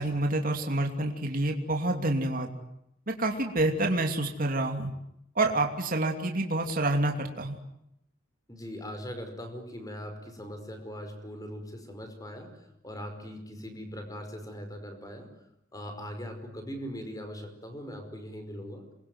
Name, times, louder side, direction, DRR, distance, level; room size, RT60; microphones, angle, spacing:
voice 1, 0.0-2.5 3.1-4.9 5.3-7.6, right 2 dB, 45° right, 3 dB, 2.9 m, -28 dB
voice 2, 8.5-15.4 15.7-18.9, equal, 20° left, 6 dB, 5.3 m, -40 dB
27.5 x 22.5 x 9.6 m, 0.82 s
head